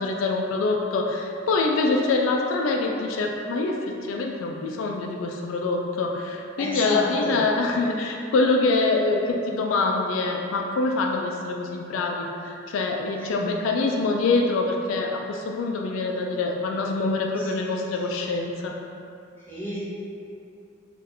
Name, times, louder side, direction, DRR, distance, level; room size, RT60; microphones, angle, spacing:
voice 1, 0.0-18.7, left 3 dB, 85° left, 1 dB, 0.3 m, -25 dB
voice 2, 6.6-7.4 13.3-13.5 17.4-17.7 19.5-19.8, equal, 10° left, -10 dB, 1.0 m, -33 dB
2.6 x 2.4 x 4.1 m, 2.6 s
head